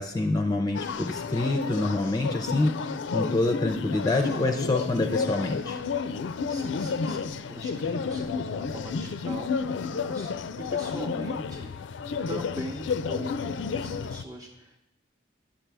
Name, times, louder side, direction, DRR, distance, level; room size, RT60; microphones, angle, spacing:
voice 1, 0.0-5.8, left 2 dB, 20° left, 4 dB, 0.5 m, -26 dB
sound 1, 0.7-14.2, left 5 dB, 85° left, 0.4 m, -31 dB
voice 2, 4.8-5.1 6.2-10.4 10.7-11.7 12.3-14.8, right 1 dB, 20° right, -1 dB, 0.7 m, -42 dB
10.0 x 7.4 x 3.4 m, 0.83 s
head